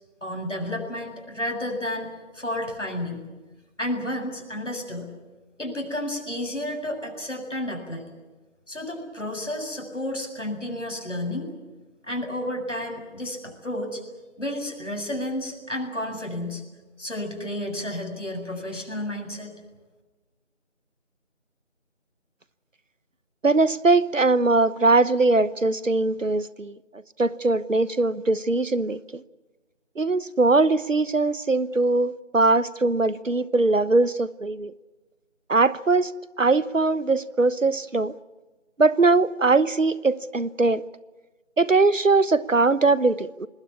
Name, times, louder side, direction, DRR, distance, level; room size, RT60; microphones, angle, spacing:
voice 1, 0.2-3.2 3.8-5.1 5.6-8.1 8.7-11.5 12.1-14.0 14.4-16.6 17.0-19.5, left 1 dB, 70° left, 7.7 m, -31 dB
voice 2, 23.4-26.8 27.2-29.2 30.0-34.7 35.5-36.1 36.4-38.1 38.8-40.8 41.6-43.5, right 3 dB, 85° right, 1.2 m, -21 dB
26.0 x 20.0 x 8.6 m
figure-of-eight pair, 175°, 37 cm